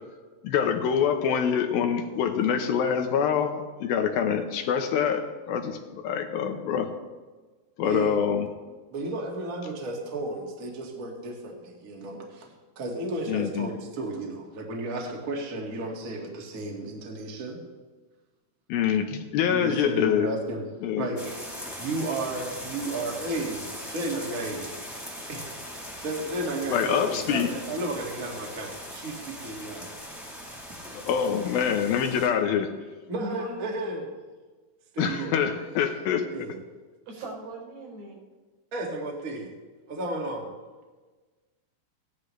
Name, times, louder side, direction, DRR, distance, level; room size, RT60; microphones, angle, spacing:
voice 1, 0.4-5.8 6.0-6.9 7.8-8.5 13.3-13.7 18.7-20.3 20.8-21.1 26.7-27.5 30.9-32.7 35.0-36.3, left 8 dB, 75° left, 5 dB, 2.6 m, -25 dB
voice 2, 7.8-8.2 8.9-17.6 19.5-20.6 21.0-21.4 21.8-24.7 25.3-25.4 26.0-30.0 33.1-34.1 34.9-35.3 36.3-36.6 38.7-39.5 39.9-40.5, right 2 dB, 35° right, -1 dB, 1.4 m, -33 dB
sound 1, 21.2-32.3, equal, ahead, 1.9 m, -40 dB
voice 3, 33.2-33.8 35.9-36.0 37.1-38.2, right 1 dB, 80° right, -3 dB, 6.7 m, -39 dB
16.5 x 11.5 x 3.2 m, 1.3 s
omnidirectional pair, 4.4 m